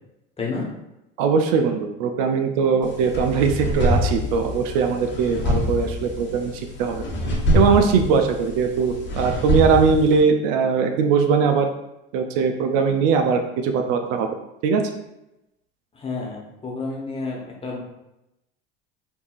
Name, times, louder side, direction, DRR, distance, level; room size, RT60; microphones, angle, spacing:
voice 1, 1.2-6.5 6.8-7.0 7.5-11.7 12.1-14.3 14.6-14.8, right 5 dB, 70° right, 5 dB, 0.5 m, -20 dB
sound 1, 2.8-10.2, left 1 dB, 40° left, 1.1 m, -25 dB
voice 2, 15.9-17.8, left 3 dB, 20° left, -2 dB, 1.1 m, -30 dB
4.6 x 2.6 x 2.4 m, 0.91 s
hypercardioid pair, 80°, 30 cm